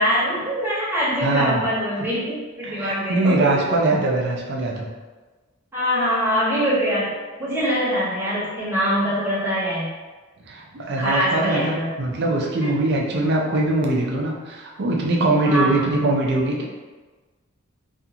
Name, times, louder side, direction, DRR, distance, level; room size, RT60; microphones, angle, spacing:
voice 1, 0.0-3.5 5.7-7.1 7.4-9.9 11.0-11.9 12.5-12.9 15.4-15.9, equal, 10° right, -9 dB, 0.8 m, -23 dB
voice 2, 1.2-1.6 2.6-4.9 10.5-16.6, right 2 dB, 55° right, -1 dB, 0.5 m, -22 dB
2.4 x 2.4 x 2.8 m, 1.3 s
head